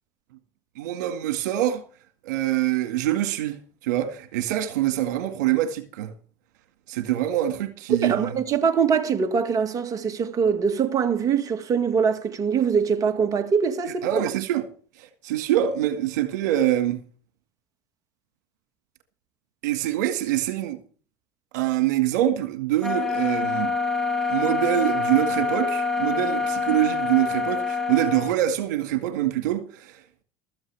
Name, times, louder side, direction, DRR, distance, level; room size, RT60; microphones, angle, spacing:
voice 1, 0.8-1.8 2.2-6.1 6.9-8.3 14.0-14.7 15.0-17.0 19.6-20.8 21.5-23.7 24.3-30.0, right 13 dB, 80° right, 1.9 m, -25 dB
voice 2, 8.0-14.2, right 6 dB, 40° right, 1.9 m, -23 dB
sound 1, 22.8-28.4, left 4 dB, 5° left, 5.0 m, -26 dB
15.0 x 13.5 x 3.5 m
hypercardioid pair, 90°, 9 cm